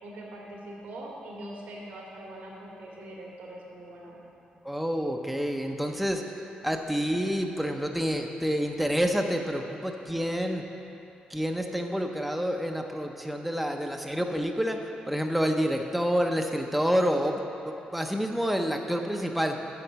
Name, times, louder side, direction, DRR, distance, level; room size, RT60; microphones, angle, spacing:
voice 1, 0.0-4.2, right 1 dB, 90° right, -3 dB, 2.3 m, -42 dB
voice 2, 4.6-6.2 6.6-10.6 11.3-19.6, equal, ahead, 3 dB, 0.5 m, -28 dB
8.6 x 7.1 x 6.7 m, 3.0 s
cardioid pair, 130°, 3 cm